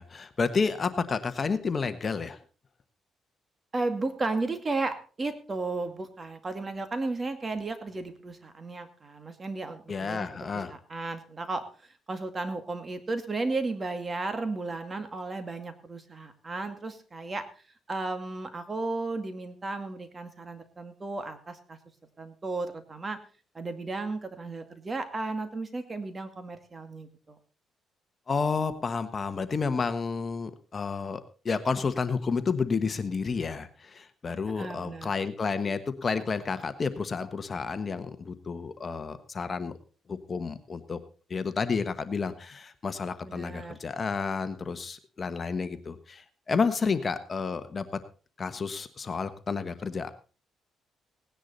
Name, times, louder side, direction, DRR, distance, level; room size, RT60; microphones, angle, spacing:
voice 1, 0.0-2.4 9.9-10.7 28.3-39.7 40.1-41.0 41.3-47.9 48.4-50.1, left 5 dB, 35° left, 10 dB, 1.2 m, -30 dB
voice 2, 3.7-10.3 10.7-17.5 17.9-21.8 22.2-23.2 23.5-27.4 34.6-35.1 43.2-43.8, right 3 dB, 30° right, 8 dB, 2.1 m, -34 dB
18.0 x 10.0 x 4.1 m, 0.37 s
cardioid pair, 90°, 0 cm